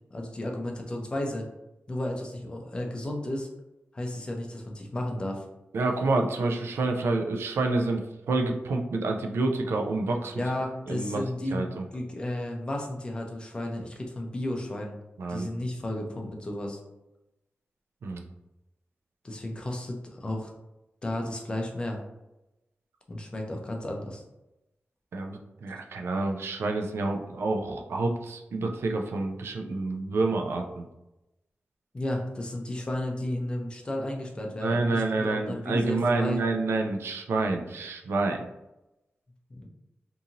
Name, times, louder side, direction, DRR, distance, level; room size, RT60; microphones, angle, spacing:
voice 1, 0.1-1.5 1.9-3.5 3.9-5.5 10.3-15.0 15.3-16.8 19.2-20.5 21.0-22.0 23.1-24.2 31.9-36.4 39.5-39.7, left 1 dB, 25° left, 1 dB, 0.5 m, -33 dB
voice 2, 5.7-10.4 10.9-11.2 11.5-11.8 15.2-15.5 18.0-18.2 25.1-30.8 34.6-38.5, right 3 dB, 90° right, 3 dB, 0.4 m, -28 dB
2.6 x 2.5 x 2.8 m, 0.94 s
wide cardioid pair, 165°, 4 cm